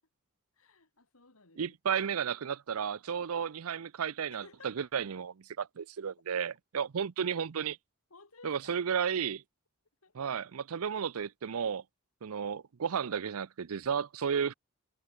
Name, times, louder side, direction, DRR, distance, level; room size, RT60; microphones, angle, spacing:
voice 1, 0.5-1.8 4.3-4.9 8.1-8.9 10.0-10.3, left 4 dB, 75° left, 3.1 m, -57 dB
voice 2, 1.6-7.8 8.4-9.4 10.1-11.8 12.2-14.5, right 7 dB, 75° right, 0.5 m, -33 dB
head